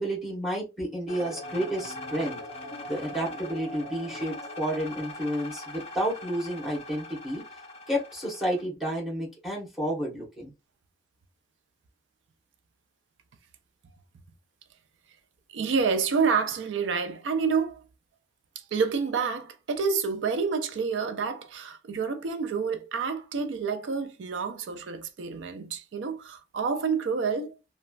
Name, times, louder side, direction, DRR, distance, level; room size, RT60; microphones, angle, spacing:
voice 1, 0.0-2.4 2.9-7.4 7.9-10.5, equal, ahead, 1.1 m, -31 dB
sound 1, 1.1-8.6, left 2 dB, 35° left, 0.5 m, -41 dB
voice 2, 15.5-17.8 18.6-27.5, right 5 dB, 90° right, 0.4 m, -28 dB
3.0 x 2.3 x 2.3 m
head